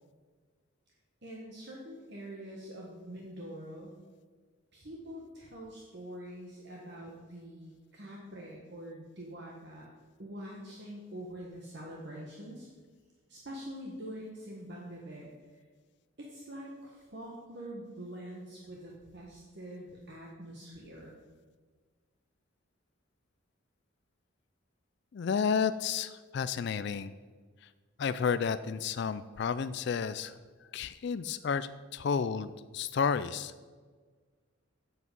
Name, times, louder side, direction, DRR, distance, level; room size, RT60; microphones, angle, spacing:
voice 1, 1.2-3.9 4.7-9.9 10.2-12.7 13.3-15.6 16.2-21.2, equal, 55° right, -2 dB, 1.4 m, -45 dB
voice 2, 25.1-27.1 27.6-27.7 28.0-33.5, left 6 dB, 55° left, 13 dB, 0.3 m, -32 dB
8.4 x 7.7 x 5.3 m, 1.5 s
head